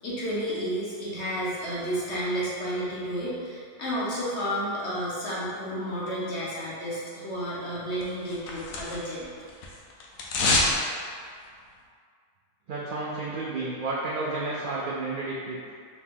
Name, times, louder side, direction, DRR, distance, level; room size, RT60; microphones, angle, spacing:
voice 1, 0.0-9.3, equal, 60° left, -7 dB, 1.2 m, -31 dB
sound 1, 8.0-9.2 9.5-10.8 11.1-11.2, left 2 dB, 80° left, 1.1 m, -26 dB
voice 2, 12.7-15.6, right 2 dB, 75° right, -5 dB, 0.4 m, -31 dB
4.0 x 2.8 x 3.7 m, 2.2 s
omnidirectional pair, 1.4 m